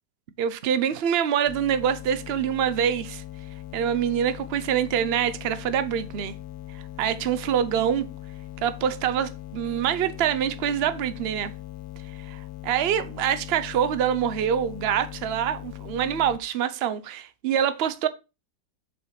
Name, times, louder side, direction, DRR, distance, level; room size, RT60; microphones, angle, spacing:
voice 1, 0.4-3.2 3.7-6.3 6.7-8.0 8.6-11.5 12.2-18.1, right 9 dB, 85° right, 0.5 m, -25 dB
sound 1, 1.4-16.4, left 15 dB, 70° left, 1.1 m, -40 dB
6.5 x 4.1 x 5.8 m
omnidirectional pair, 1.8 m